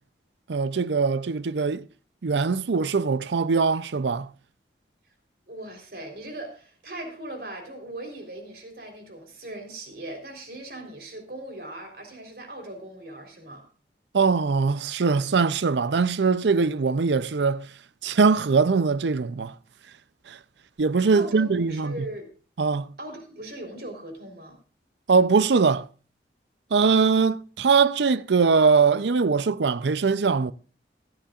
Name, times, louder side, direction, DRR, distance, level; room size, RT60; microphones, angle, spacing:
voice 1, 0.5-1.9 2.2-4.3 14.1-17.7 18.0-19.5 20.3-20.4 20.8-22.1 22.6-22.9 25.1-25.9 26.7-30.5, right 5 dB, 85° right, 0.6 m, -22 dB
voice 2, 5.5-13.6 21.1-22.3 23.0-24.6, right 1 dB, 60° right, 3.8 m, -39 dB
17.0 x 13.0 x 2.5 m
head